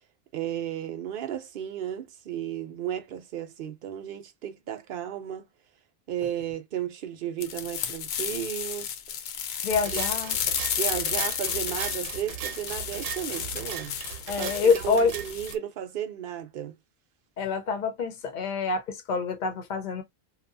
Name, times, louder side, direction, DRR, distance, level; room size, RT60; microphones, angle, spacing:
voice 1, 0.3-5.5 6.1-8.9 9.9-10.0 10.8-13.9 14.4-16.8, right 10 dB, 60° right, 0.6 m, -34 dB
sound 1, 7.4-15.5, left 8 dB, 90° left, 1.0 m, -32 dB
voice 2, 9.6-10.4 14.3-15.1 17.4-20.0, left 5 dB, 45° left, 0.8 m, -26 dB
sound 2, 9.7-15.6, right 9 dB, 80° right, 0.9 m, -38 dB
2.7 x 2.3 x 2.5 m
omnidirectional pair, 1.3 m